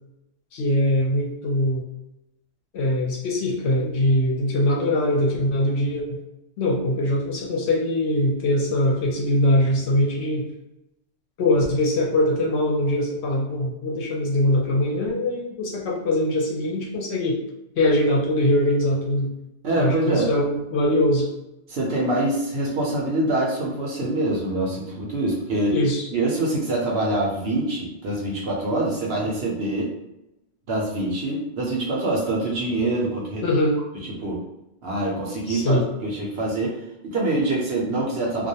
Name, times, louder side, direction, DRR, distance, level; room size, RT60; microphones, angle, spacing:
voice 1, 0.5-1.8 2.7-6.2 6.6-10.5 11.4-17.4 17.8-19.3 19.8-21.3 25.7-26.1 33.4-33.8 35.5-35.9, left 1 dB, 65° left, -2 dB, 0.8 m, -22 dB
voice 2, 19.6-20.3 21.7-25.7 26.1-29.9 30.7-33.5 34.0-34.4 34.8-36.8 37.0-38.5, right 2 dB, 60° right, -2 dB, 0.7 m, -25 dB
2.3 x 2.1 x 2.7 m, 0.90 s
omnidirectional pair, 1.3 m